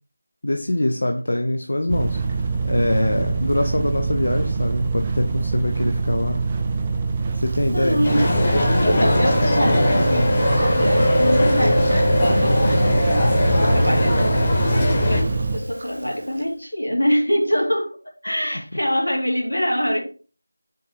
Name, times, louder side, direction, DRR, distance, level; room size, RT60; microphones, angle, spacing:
voice 1, 0.4-6.4 7.3-8.0 12.4-12.8, left 1 dB, 55° left, 4 dB, 0.6 m, -23 dB
sound 1, 1.9-15.6, right 4 dB, 20° right, 0.5 m, -25 dB
Chewing mastication, 7.5-16.4, equal, 35° right, 1.1 m, -26 dB
voice 2, 7.7-8.2 8.8-14.4 15.0-18.0 18.2-20.0, equal, 80° left, 1 dB, 2.1 m, -24 dB
sound 2, 8.0-15.2, left 1 dB, 20° left, 1.2 m, -20 dB
6.4 x 2.7 x 5.5 m, 0.38 s
figure-of-eight pair, 165°, 0 cm